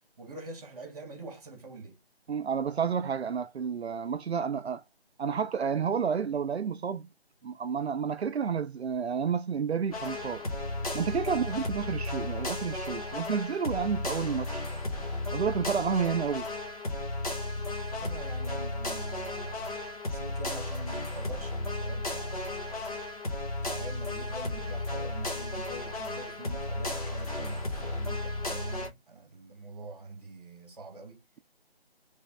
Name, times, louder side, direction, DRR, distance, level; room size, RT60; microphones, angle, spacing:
voice 1, 0.2-2.0 11.2-11.5 17.9-19.8 20.1-22.8 23.6-31.2, right 3 dB, 35° right, 1.3 m, -44 dB
voice 2, 2.3-4.8 5.2-7.1 7.4-10.4 10.9-14.7 15.3-16.5, right 6 dB, 85° right, 0.5 m, -30 dB
sound 1, 9.9-28.9, left 2 dB, 35° left, 1.2 m, -34 dB
3.4 x 3.3 x 3.4 m
figure-of-eight pair, 170°, 32 cm